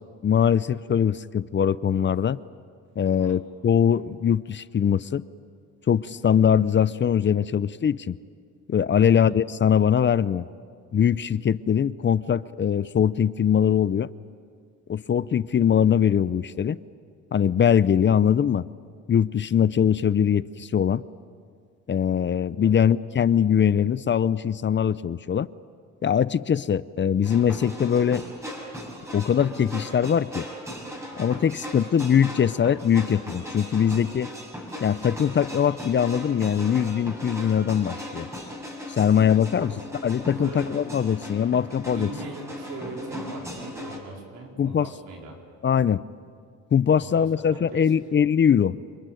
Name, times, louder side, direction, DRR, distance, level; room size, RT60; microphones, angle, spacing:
voice 1, 0.2-2.4 3.0-5.2 5.9-8.2 8.7-10.4 10.9-14.1 14.9-16.8 17.3-18.6 19.1-21.0 21.9-25.5 26.0-28.2 29.1-30.5 31.2-34.3 34.8-38.3 38.9-39.7 40.0-42.1 44.6-44.9 45.6-46.0 46.7-48.8, left 8 dB, 40° left, 17 dB, 0.6 m, -22 dB
sound 1, 27.2-44.0, left 1 dB, 10° right, 6.2 m, -38 dB
voice 2, 39.5-39.8 40.3-40.7 41.9-45.4 46.9-48.0, right 4 dB, 85° right, 1 dB, 4.9 m, -40 dB
27.0 x 21.5 x 9.2 m, 2.1 s
cardioid pair, 90°, 30 cm